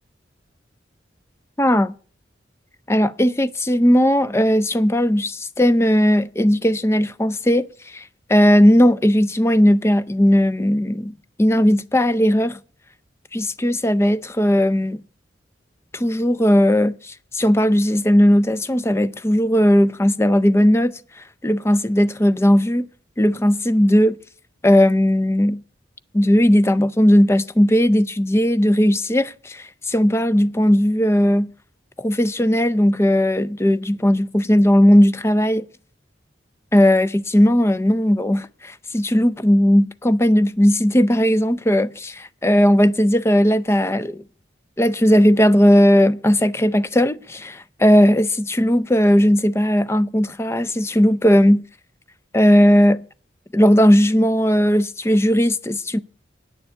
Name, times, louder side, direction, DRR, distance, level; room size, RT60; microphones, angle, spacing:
voice 1, 1.6-1.9 2.9-8.0 8.3-11.1 11.4-12.6 13.3-15.0 15.9-21.0 21.4-22.9 23.2-24.2 24.6-25.6 26.1-31.5 32.0-35.7 36.7-44.2 44.8-51.6 52.3-53.0 53.5-56.0, equal, 15° left, 0.4 m, -17 dB
9.5 x 7.0 x 8.0 m
head